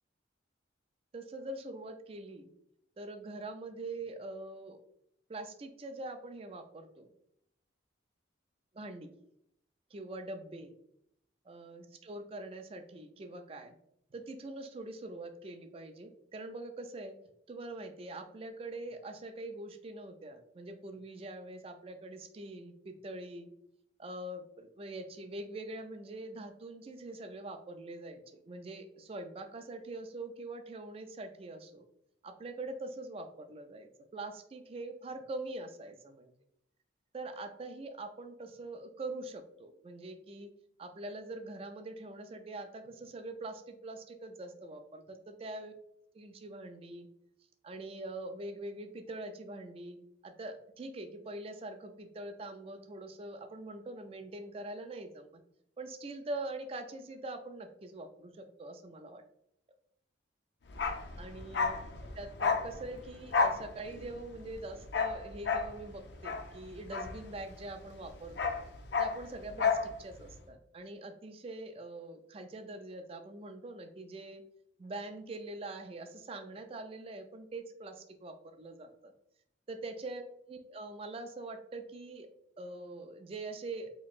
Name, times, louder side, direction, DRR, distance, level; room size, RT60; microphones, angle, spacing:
voice 1, 1.1-2.5 3.0-4.8 5.3-7.1 8.8-9.1 9.9-10.8 11.5-13.7 14.1-17.2 17.5-23.5 24.0-31.9 32.2-36.3 37.1-40.5 40.8-45.7 46.2-47.1 47.6-55.4 55.8-59.2 61.2-61.8 62.1-68.6 69.0-74.4 74.8-79.1 79.7-82.3 82.6-83.9, right 2 dB, 30° right, 7 dB, 0.3 m, -44 dB
Bark, 60.7-67.7 68.0-69.9 70.2-70.3, left 5 dB, 60° left, 0.5 m, -32 dB
4.2 x 3.0 x 2.4 m, 0.76 s
head